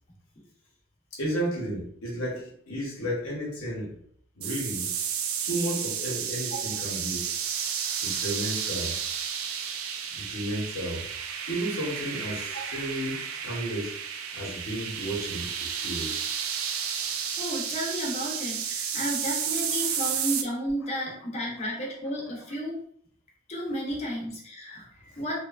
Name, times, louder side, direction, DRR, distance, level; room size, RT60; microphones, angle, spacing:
voice 1, 1.1-4.0 4.3-4.9 5.4-7.2 8.0-9.0 10.1-11.0 11.5-14.0 14.3-16.3, right 1 dB, 80° left, -2 dB, 0.9 m, -33 dB
sound 1, 4.4-20.4, right 7 dB, 85° right, 0.4 m, -32 dB
voice 2, 17.4-22.8 23.5-25.4, equal, 35° left, -2 dB, 0.8 m, -33 dB
2.9 x 2.1 x 2.4 m, 0.62 s
head